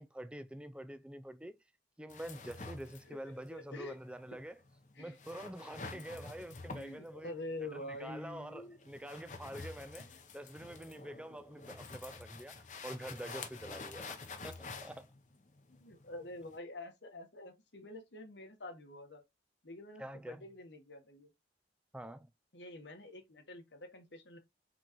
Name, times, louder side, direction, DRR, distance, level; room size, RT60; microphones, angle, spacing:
voice 1, 0.0-1.6 2.0-4.6 5.0-7.3 7.6-10.1 10.3-15.1 20.0-20.4 21.9-22.3, right 1 dB, 5° right, 0.3 m, -46 dB
sound 1, 2.1-16.6, left 4 dB, 40° left, 0.8 m, -49 dB
voice 2, 3.0-4.0 4.9-5.1 5.9-6.0 6.7-8.8 10.1-10.2 15.7-19.2 19.6-21.3 22.5-24.4, left 2 dB, 80° left, 1.3 m, -47 dB
4.4 x 3.9 x 3.0 m
head